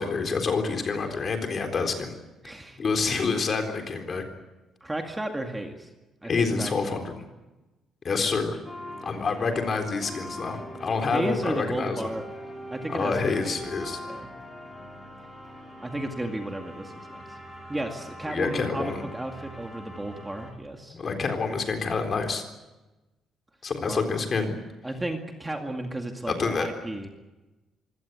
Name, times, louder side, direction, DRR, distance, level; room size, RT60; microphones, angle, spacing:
voice 1, 0.0-2.1 2.8-4.2 6.2-7.2 8.0-8.6 9.0-12.1 12.9-14.0 18.3-19.0 20.9-22.4 23.6-24.5 26.3-26.7, left 4 dB, 35° left, 5 dB, 3.9 m, -27 dB
voice 2, 2.4-2.8 4.8-5.9 6.2-7.0 11.1-12.2 12.7-13.7 14.1-14.3 15.8-17.4 17.7-21.0 23.9-24.0 24.8-27.1, right 1 dB, 10° right, 4 dB, 2.2 m, -33 dB
sound 1, 8.7-20.5, equal, 10° left, 5.6 m, -42 dB
25.5 x 17.0 x 9.4 m, 1.1 s
cardioid pair, 145°, 0 cm